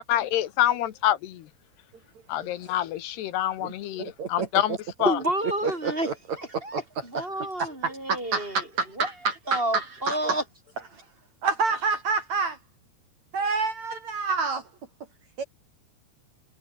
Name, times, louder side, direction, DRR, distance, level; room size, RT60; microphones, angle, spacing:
voice 1, 0.1-1.5 2.3-5.2, left 13 dB, 85° left, 3.5 m, -26 dB
voice 2, 4.0-5.1 5.6-6.1 6.7-6.8 7.1-7.2 7.6-10.4 10.9-11.0 11.4-12.6 13.3-14.7 15.4-15.5, right 4 dB, 50° right, 3.1 m, -28 dB
voice 3, 5.0-6.1 6.4-8.6 9.0-9.1 9.5-10.4, right 1 dB, 15° right, 5.5 m, -29 dB
omnidirectional pair, 4.6 m